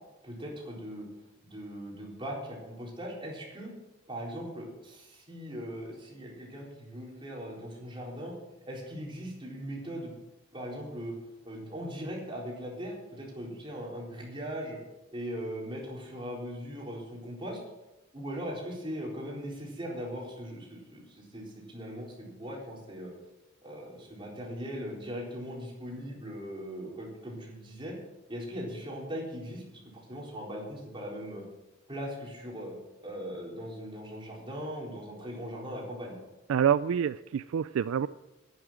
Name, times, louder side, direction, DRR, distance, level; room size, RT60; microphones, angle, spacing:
voice 1, 0.2-1.1 1.4-3.7 4.1-8.3 8.7-10.1 10.5-11.2 11.4-14.8 15.1-17.6 18.1-23.1 23.6-28.0 28.3-31.4 31.9-32.7 33.0-36.2, equal, 25° right, -3 dB, 4.0 m, -39 dB
voice 2, 36.5-38.1, right 8 dB, 80° right, 15 dB, 0.3 m, -27 dB
11.0 x 9.9 x 7.4 m, 1.0 s
head